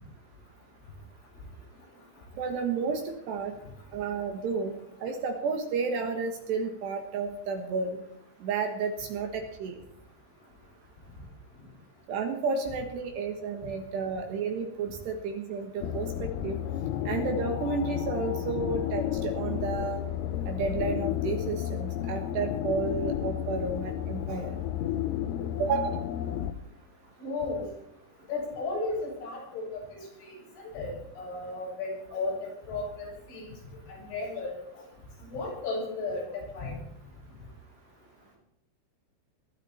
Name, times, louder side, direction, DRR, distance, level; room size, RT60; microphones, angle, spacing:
voice 1, 2.4-3.5 3.9-4.7 5.0-8.0 8.4-9.8 12.1-16.6 17.1-20.0 20.5-24.5 25.6-26.0, right 4 dB, 65° right, 5 dB, 3.1 m, -31 dB
sound 1, 15.8-26.5, left 11 dB, 85° left, 2.3 m, -32 dB
voice 2, 27.2-27.7 28.3-30.3 30.7-32.4 32.7-33.5 33.9-34.6 35.3-36.8, left 3 dB, 65° left, -4 dB, 9.3 m, -34 dB
20.5 x 13.5 x 4.3 m, 0.76 s
omnidirectional pair, 5.9 m